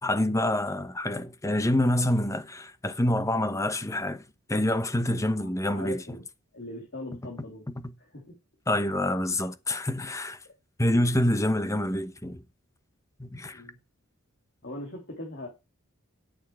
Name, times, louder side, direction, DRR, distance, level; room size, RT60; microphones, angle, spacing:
voice 1, 0.0-4.2 4.5-6.0 8.7-10.4 10.8-12.4 13.2-13.6, left 1 dB, 15° left, 0.9 m, -26 dB
voice 2, 5.4-6.2 6.5-7.7 8.0-8.4 10.4-10.5 13.5-13.8 14.6-15.5, left 2 dB, 55° left, 3.2 m, -40 dB
11.5 x 6.6 x 4.8 m
head